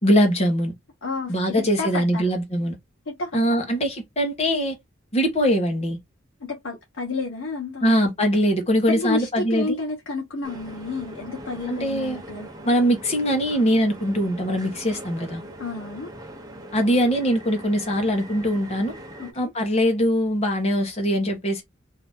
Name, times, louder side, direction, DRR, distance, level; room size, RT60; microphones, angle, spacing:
voice 1, 0.0-0.7 1.3-2.8 3.3-4.8 5.1-6.0 7.8-9.8 11.7-12.2 12.6-15.4 16.7-18.9 19.3-21.6, equal, 35° left, 1.2 m, -22 dB
voice 2, 1.0-2.3 3.1-3.7 6.4-8.0 8.8-12.5 15.6-16.1 19.2-19.5, left 3 dB, 75° left, 1.1 m, -31 dB
sound 1, 10.4-19.3, right 1 dB, 20° right, 0.8 m, -41 dB
2.9 x 2.8 x 3.5 m
head